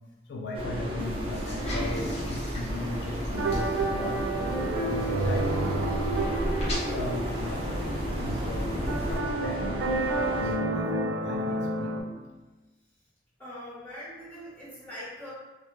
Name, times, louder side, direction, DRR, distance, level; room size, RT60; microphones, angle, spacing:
voice 1, 0.3-6.2 6.8-12.0, left 1 dB, 75° left, 0 dB, 0.3 m, -38 dB
sound 1, 0.5-10.6, equal, 30° right, 0.4 m, -35 dB
sound 2, 1.0-9.2, equal, 35° left, 0.7 m, -34 dB
sound 3, 3.3-12.0, right 2 dB, 90° right, 0.5 m, -30 dB
voice 2, 13.4-15.3, equal, 10° left, -12 dB, 1.2 m, -42 dB
2.4 x 2.2 x 3.1 m, 1.2 s
head